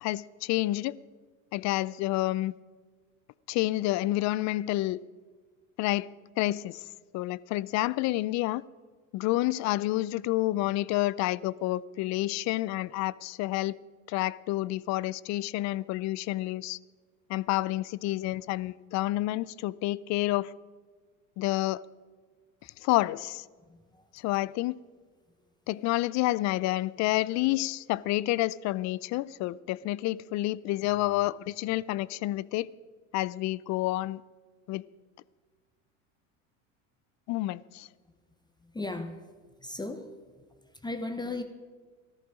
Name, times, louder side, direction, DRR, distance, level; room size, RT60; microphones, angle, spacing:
voice 1, 0.0-0.9 1.5-2.5 3.5-5.0 5.8-6.1 6.4-6.8 7.1-8.6 9.1-13.8 14.1-16.8 17.3-20.5 21.4-21.8 22.8-23.4 24.1-24.8 25.7-32.7 33.1-34.2 34.7-34.8 37.3-37.9, left 17 dB, 45° left, 0.5 m, -29 dB
voice 2, 23.6-24.1 38.6-39.2 39.6-40.2 40.5-41.4, left 2 dB, 10° left, 1.0 m, -37 dB
14.5 x 13.5 x 5.1 m
hypercardioid pair, 90°, 40 cm